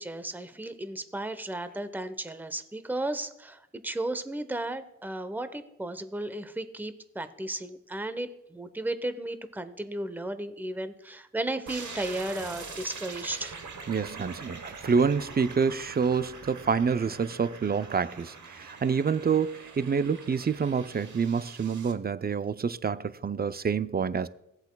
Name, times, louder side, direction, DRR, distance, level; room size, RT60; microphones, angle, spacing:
voice 1, 0.0-13.6, right 1 dB, 5° right, 0.8 m, -34 dB
sound 1, 11.7-21.9, right 4 dB, 60° right, 1.1 m, -44 dB
voice 2, 13.9-24.3, right 6 dB, 30° right, 0.4 m, -27 dB
16.5 x 7.9 x 2.2 m
cardioid pair, 40°, 32 cm